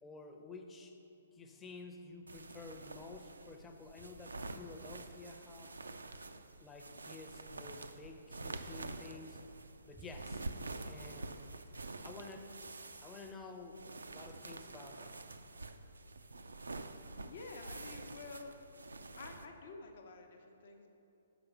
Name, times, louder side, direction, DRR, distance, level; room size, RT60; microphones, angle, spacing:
voice 1, 0.0-1.0 1.3-5.7 6.6-9.4 9.8-10.4 10.8-11.5 12.0-12.5 13.0-13.8 14.1-15.2, left 3 dB, 15° left, 4 dB, 0.6 m, -51 dB
sound 1, 2.3-19.5, right 2 dB, 85° right, 0.4 m, -47 dB
voice 2, 17.2-18.6 19.2-20.9, left 4 dB, 60° left, 4 dB, 0.8 m, -50 dB
6.0 x 4.8 x 6.1 m, 2.9 s
figure-of-eight pair, 130°, 0 cm